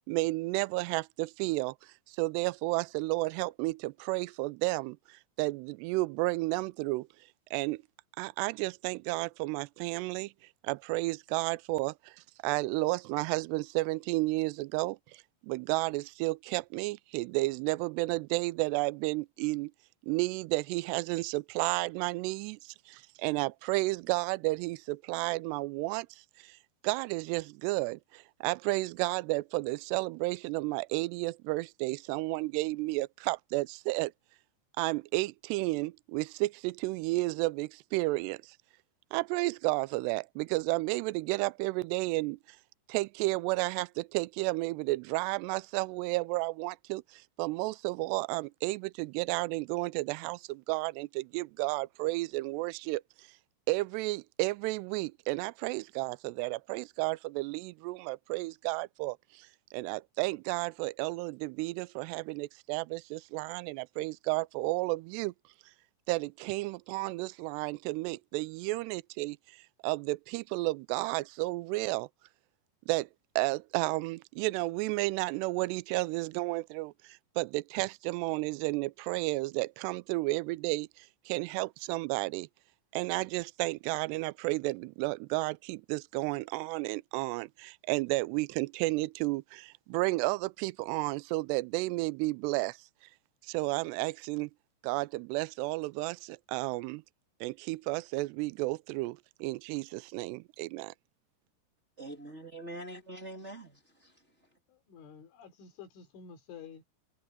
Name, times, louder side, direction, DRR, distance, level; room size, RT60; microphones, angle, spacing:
voice 1, 0.1-7.1 7.5-7.8 8.2-10.3 10.6-12.2 12.4-19.7 20.1-26.6 26.8-34.1 34.8-38.6 39.1-42.4 42.9-53.0 53.7-65.3 66.1-72.1 72.9-73.1 73.4-82.5 82.9-92.8 93.5-94.5 94.8-97.0 97.4-100.9, right 22 dB, 90° right, 2.4 m, -32 dB
voice 2, 102.0-104.1, right 1 dB, 20° right, 2.0 m, -44 dB
voice 3, 104.7-106.8, left 7 dB, 85° left, 6.1 m, -50 dB
omnidirectional pair, 5.4 m